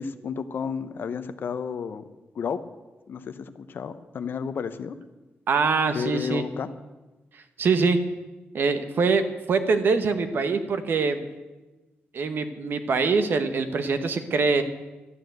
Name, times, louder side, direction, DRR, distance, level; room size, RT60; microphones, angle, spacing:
voice 1, 0.0-2.0 2.3-2.6 3.1-5.0 5.9-6.7, left 6 dB, 55° left, 12 dB, 0.8 m, -32 dB
voice 2, 5.5-6.4 7.6-8.0 8.5-11.2 12.1-14.6, right 4 dB, 55° right, 9 dB, 1.1 m, -23 dB
12.5 x 9.1 x 7.9 m, 1.1 s
wide cardioid pair, 155°, 4 cm